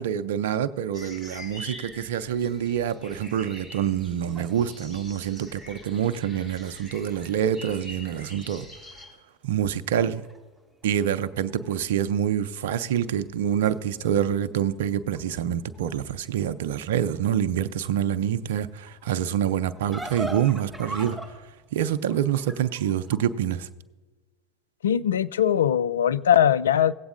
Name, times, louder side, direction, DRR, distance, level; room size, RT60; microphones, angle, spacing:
voice 1, 0.0-8.6 9.4-10.2 10.8-21.2 21.7-23.7, right 9 dB, 75° right, 0.5 m, -26 dB
sound 1, 0.9-9.1, left 1 dB, 35° left, 3.6 m, -45 dB
sound 2, 4.3-7.5 8.0-8.1 8.4-9.1 9.4-11.7 12.0-12.5 13.2-23.2, right 1 dB, ahead, 3.1 m, -43 dB
voice 2, 24.8-26.9, left 9 dB, 80° left, 0.3 m, -21 dB
17.5 x 8.0 x 2.5 m
hypercardioid pair, 85°, 0 cm